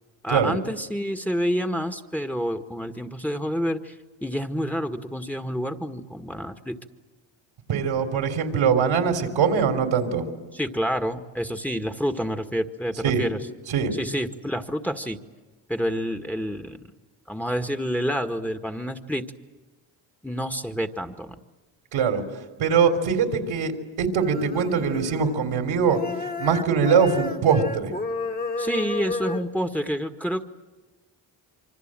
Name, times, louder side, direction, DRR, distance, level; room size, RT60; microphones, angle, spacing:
voice 1, 0.2-3.9 4.2-6.8 10.5-13.4 13.9-15.2 15.7-16.8 17.3-19.2 20.2-21.4 28.6-30.4, equal, 5° left, 7 dB, 1.8 m, -28 dB
voice 2, 7.7-10.2 13.0-13.2 13.7-13.9 21.9-22.2 22.6-23.7 24.0-26.0 26.4-27.9, right 6 dB, 80° right, 5 dB, 3.5 m, -22 dB
sound 1, 24.2-25.6 25.9-29.4, left 3 dB, 20° left, 2.0 m, -32 dB
26.5 x 25.0 x 7.7 m, 1.2 s
supercardioid pair, 55°, 48 cm